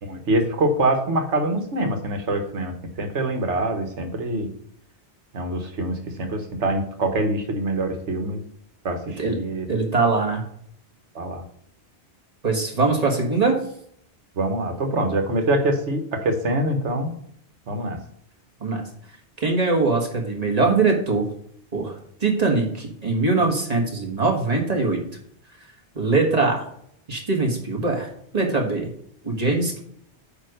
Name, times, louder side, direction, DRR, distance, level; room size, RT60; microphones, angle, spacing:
voice 1, 0.0-2.7 3.0-4.5 5.3-8.4 8.8-9.7 11.1-11.4 14.4-17.1 17.7-18.0, right 1 dB, 85° right, 5 dB, 1.5 m, -24 dB
voice 2, 9.7-10.4 12.4-13.6 18.6-18.8 19.4-21.2 21.7-25.0 25.9-26.7 27.1-28.1 28.3-28.9 29.2-29.8, right 3 dB, 35° right, 1 dB, 1.7 m, -22 dB
8.7 x 3.1 x 6.5 m, 0.66 s
omnidirectional pair, 1.2 m